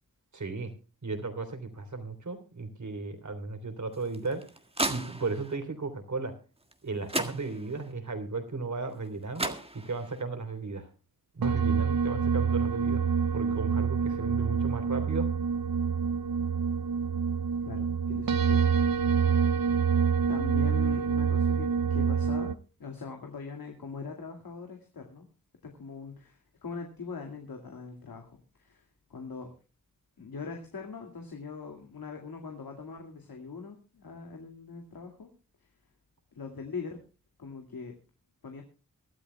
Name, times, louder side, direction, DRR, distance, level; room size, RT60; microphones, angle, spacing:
voice 1, 0.3-0.7 1.0-4.4 4.9-6.3 6.8-10.9 11.3-15.3 19.2-19.4, right 3 dB, 55° right, 8 dB, 3.6 m, -35 dB
sound 1, 3.9-5.6 6.7-6.8 7.1-7.9 9.0-9.1 9.4-10.2, right 1 dB, 15° right, 1.7 m, -34 dB
sound 2, 11.4-22.5, right 6 dB, 85° right, 0.8 m, -27 dB
voice 2, 17.6-18.6 20.3-25.3 25.6-28.8 29.1-29.5 30.2-35.3 36.3-37.0 37.4-37.9 38.4-38.6, left 5 dB, 85° left, 3 dB, 2.3 m, -41 dB
24.0 x 12.5 x 2.2 m, 0.34 s
cardioid pair, 65°, 34 cm